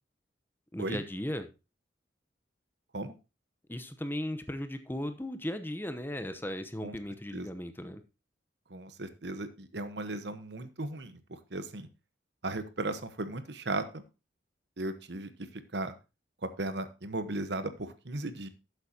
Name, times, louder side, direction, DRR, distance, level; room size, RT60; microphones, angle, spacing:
voice 1, 0.7-1.5 3.7-8.0, left 1 dB, 10° left, 9 dB, 0.9 m, -36 dB
voice 2, 8.7-11.9 12.4-14.0 14.8-15.9 16.4-18.5, right 2 dB, 70° right, 11 dB, 1.1 m, -36 dB
12.0 x 8.1 x 2.8 m, 0.28 s
head